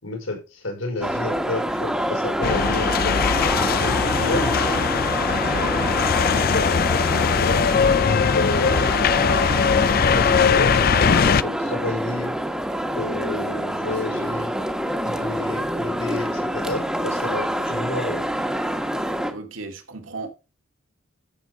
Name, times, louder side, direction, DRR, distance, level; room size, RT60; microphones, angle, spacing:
voice 1, 0.0-3.2 3.8-4.6 6.2-7.6 8.3-9.0 9.4-10.7 11.2-12.3 12.9-14.5 15.0-18.2, left 2 dB, 80° left, 5.4 m, -30 dB
sound 1, 1.0-19.3, equal, 5° right, 1.3 m, -26 dB
sound 2, 2.4-11.4, left 6 dB, 45° left, 0.4 m, -20 dB
voice 2, 19.3-20.3, right 3 dB, 75° right, 2.3 m, -35 dB
13.5 x 7.0 x 4.8 m
head